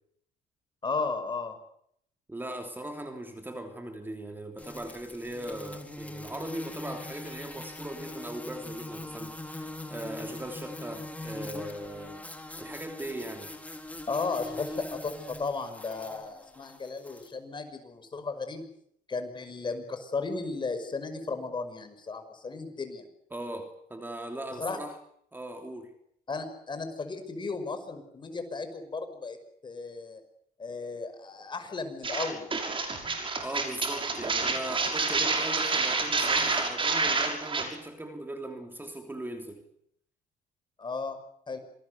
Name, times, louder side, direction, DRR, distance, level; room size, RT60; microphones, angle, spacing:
voice 1, 0.8-1.6 14.1-18.7 19.1-23.1 24.6-24.8 26.3-29.4 29.6-30.2 30.6-32.5 40.8-41.2 41.5-41.6, left 4 dB, 25° left, 8 dB, 5.6 m, -35 dB
voice 2, 2.3-12.3 12.6-13.5 23.3-25.0 25.3-25.9 33.4-39.6, right 1 dB, 10° right, 5 dB, 3.2 m, -39 dB
sound 1, 4.6-17.3, left 2 dB, 10° left, 4.0 m, -42 dB
sound 2, 32.0-37.6, right 4 dB, 30° right, 6.3 m, -28 dB
27.0 x 20.0 x 8.1 m, 0.69 s
cardioid pair, 110°, 17 cm